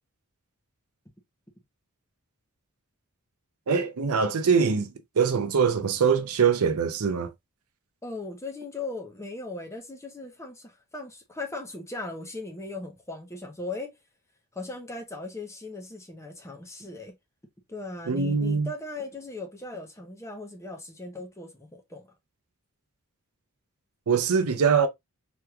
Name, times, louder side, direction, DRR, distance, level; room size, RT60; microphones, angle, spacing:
voice 1, 3.7-7.3 18.1-18.7 24.1-24.9, right 6 dB, 70° right, 0.5 m, -23 dB
voice 2, 8.0-14.0 14.5-17.1 17.7-22.1, left 2 dB, 15° left, 0.7 m, -38 dB
3.4 x 3.0 x 2.2 m
head